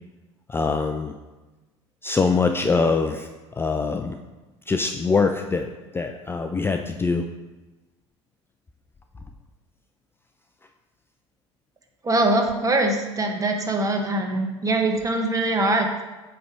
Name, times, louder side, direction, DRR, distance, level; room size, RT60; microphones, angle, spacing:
voice 1, 0.5-1.1 2.0-3.2 3.6-4.1 4.7-5.7 5.9-7.2, left 4 dB, 15° left, 6 dB, 0.4 m, -23 dB
voice 2, 12.0-16.0, right 2 dB, 20° right, 4 dB, 1.2 m, -23 dB
8.5 x 3.4 x 6.0 m, 1.2 s
figure-of-eight pair, 65°, 15 cm